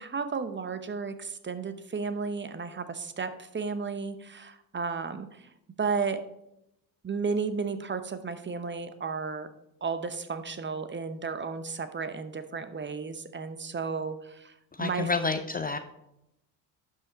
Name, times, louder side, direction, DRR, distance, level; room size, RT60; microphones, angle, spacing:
voice 1, 0.0-5.5 5.8-6.2 7.0-9.5 9.8-15.1, right 5 dB, 25° right, 11 dB, 0.8 m, -33 dB
voice 2, 14.8-15.8, left 4 dB, 20° left, 9 dB, 0.6 m, -29 dB
11.5 x 5.5 x 4.0 m, 0.85 s
hypercardioid pair, 55°, 48 cm